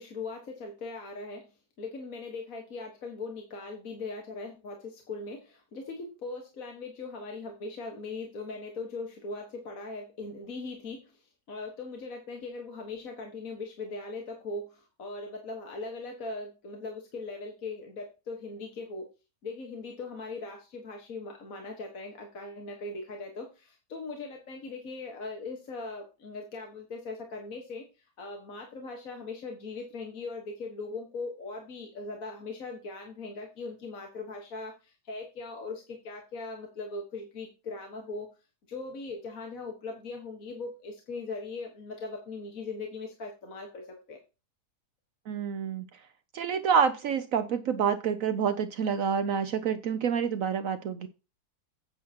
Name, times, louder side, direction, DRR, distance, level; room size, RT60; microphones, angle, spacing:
voice 1, 0.0-19.1 19.4-27.9 28.2-38.3 38.7-44.2, left 3 dB, 55° left, 2 dB, 1.9 m, -40 dB
voice 2, 45.3-45.8 46.3-51.1, right 7 dB, 65° right, 11 dB, 1.0 m, -28 dB
9.3 x 8.7 x 2.9 m, 0.30 s
omnidirectional pair, 1.7 m